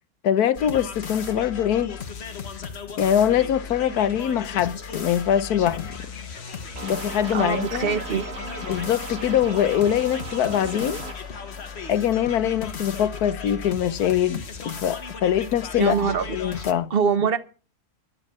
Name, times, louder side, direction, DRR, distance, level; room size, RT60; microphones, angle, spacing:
voice 1, 0.2-2.0 3.0-5.9 6.8-8.0 8.7-11.0 11.9-16.9, left 10 dB, 80° left, 1.4 m, -23 dB
sound 1, 0.5-16.7, left 6 dB, 45° left, 1.5 m, -36 dB
sound 2, 3.3-12.7, left 1 dB, 10° right, 4.2 m, -51 dB
sound 3, 6.8-11.1, right 4 dB, 65° right, 2.3 m, -37 dB
voice 2, 7.3-8.4 15.8-16.6 16.9-17.4, right 6 dB, 40° right, 1.1 m, -24 dB
11.0 x 10.5 x 7.6 m
omnidirectional pair, 1.6 m